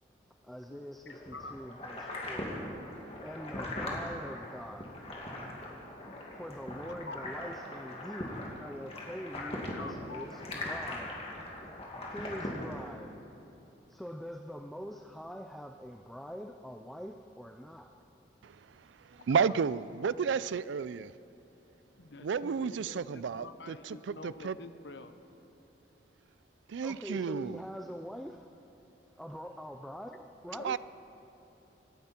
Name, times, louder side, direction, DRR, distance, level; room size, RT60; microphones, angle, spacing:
voice 1, 0.0-2.7 3.2-5.2 5.8-11.3 12.0-13.2 13.6-18.0 26.8-28.6 29.0-30.8, equal, ahead, 0.4 m, -44 dB
sound 1, 1.1-12.8, left 1 dB, 35° left, 2.3 m, -40 dB
voice 2, 6.9-7.2 9.4-10.3 21.9-25.1, left 3 dB, 75° left, 0.9 m, -47 dB
voice 3, 19.1-21.1 22.2-24.6 26.7-27.6 30.6-30.8, right 6 dB, 85° right, 0.4 m, -32 dB
26.5 x 11.5 x 4.4 m
head